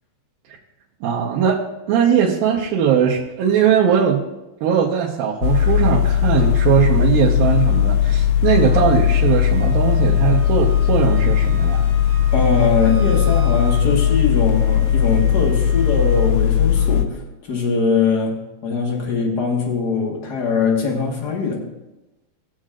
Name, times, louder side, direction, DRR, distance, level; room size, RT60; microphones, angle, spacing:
voice 1, 1.0-4.2 4.6-11.8, right 8 dB, 80° right, -5 dB, 2.8 m, -19 dB
sound 1, 2.5-2.6 3.1-3.2 4.2-4.3 4.6-4.7 5.2-5.3 6.9-7.6 8.1-8.2 8.7-9.0 9.8-9.9 10.1-10.2, right 1 dB, 35° right, 1.3 m, -35 dB
sound 2, 5.4-17.1, left 10 dB, 90° left, 1.8 m, -18 dB
Wind instrument woodwind instrument, 8.5-16.4, right 3 dB, 55° right, 2.4 m, -41 dB
voice 2, 12.3-21.7, left 4 dB, 55° left, -1 dB, 1.1 m, -21 dB
20.5 x 7.5 x 2.5 m, 1.0 s
omnidirectional pair, 4.2 m